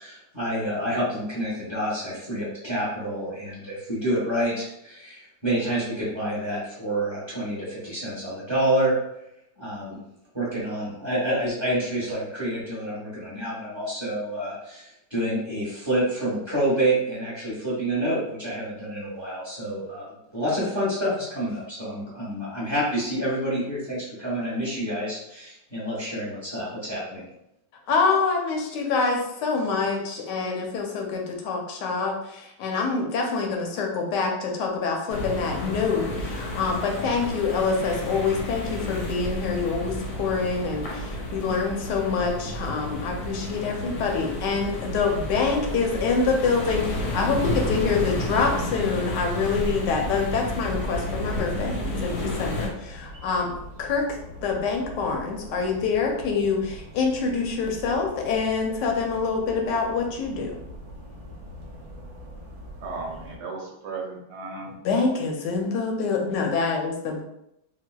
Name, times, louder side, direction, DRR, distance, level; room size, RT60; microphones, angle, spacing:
voice 1, 0.0-8.9 9.6-10.0 10.3-20.1 20.3-27.2, right 1 dB, 20° right, -8 dB, 0.7 m, -28 dB
voice 2, 27.9-54.1 54.4-60.6 64.8-67.2, left 4 dB, 75° left, 1 dB, 1.2 m, -26 dB
sound 1, 35.1-52.7, left 1 dB, 60° left, 0.9 m, -31 dB
sound 2, 44.9-63.4, equal, 55° right, 0.8 m, -43 dB
voice 3, 62.8-64.8, right 3 dB, 75° right, 0 dB, 1.1 m, -35 dB
4.0 x 2.1 x 2.2 m, 0.82 s
omnidirectional pair, 2.0 m